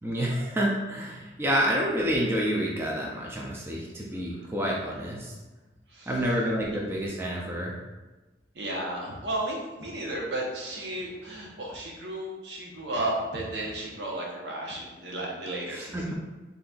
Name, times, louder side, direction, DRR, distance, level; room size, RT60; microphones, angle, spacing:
voice 1, 0.0-5.3 6.1-7.8 15.7-16.1, equal, 15° right, -3 dB, 0.4 m, -28 dB
voice 2, 8.5-16.0, right 1 dB, 70° right, -3 dB, 0.9 m, -33 dB
4.1 x 3.8 x 2.4 m, 1.2 s
head